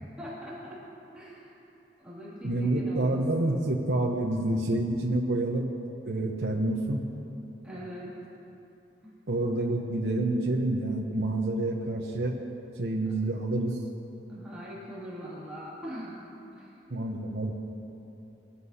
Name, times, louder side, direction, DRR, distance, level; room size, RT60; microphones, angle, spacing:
voice 1, 0.2-0.8 1.1-1.5 2.0-3.6 7.6-8.1 9.0-9.1 14.3-16.2 16.6-16.7, equal, 5° right, -8 dB, 2.4 m, -41 dB
voice 2, 2.4-5.7 6.0-7.0 9.3-12.3 12.8-13.8 16.9-17.5, right 2 dB, 75° right, -1 dB, 0.9 m, -28 dB
21.0 x 12.5 x 2.8 m, 3.0 s
head